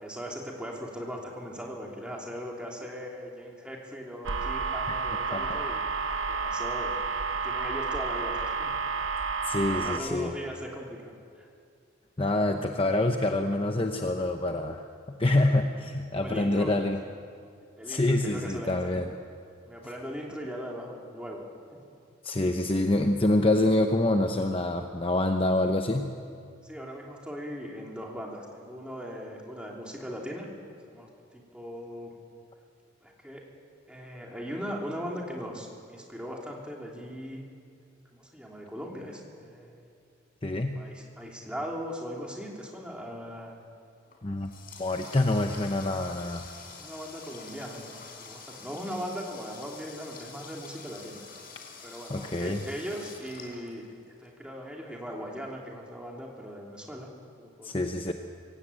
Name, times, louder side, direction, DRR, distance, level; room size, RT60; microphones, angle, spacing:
voice 1, 0.0-5.8 6.3-7.0 7.4-8.7 9.7-11.5 16.2-16.7 17.8-19.1 19.7-21.5 26.6-30.5 30.8-32.1 33.0-33.4 33.9-37.4 38.1-39.9 40.7-43.6 46.8-51.2 51.8-53.9 54.2-57.8, equal, 5° right, -2 dB, 3.3 m, -39 dB
sound 1, 4.2-10.0, right 5 dB, 70° right, 1.3 m, -30 dB
voice 2, 9.4-10.3 12.2-17.0 17.9-19.1 22.2-26.1 40.4-40.8 44.2-44.5 44.8-46.5 52.1-52.6 57.6-58.1, left 1 dB, 25° left, 4 dB, 0.9 m, -26 dB
Water tap faucet, 44.1-54.3, left 5 dB, 45° left, 3.9 m, -47 dB
24.5 x 16.5 x 8.7 m, 2.3 s
head